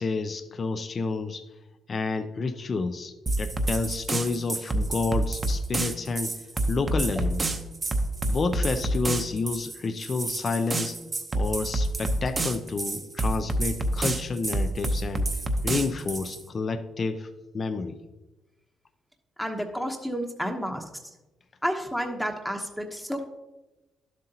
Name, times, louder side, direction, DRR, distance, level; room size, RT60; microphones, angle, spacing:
voice 1, 0.0-1.4 1.9-7.5 8.3-11.0 11.3-15.3 15.6-17.3 17.5-18.0, left 4 dB, 40° left, 9 dB, 0.5 m, -30 dB
sound 1, 3.3-16.4, right 1 dB, 30° right, 0.9 m, -28 dB
voice 2, 19.4-20.8 21.6-23.3, equal, ahead, 3 dB, 0.9 m, -30 dB
11.5 x 7.6 x 2.9 m, 1.1 s
cardioid pair, 90°, 0 cm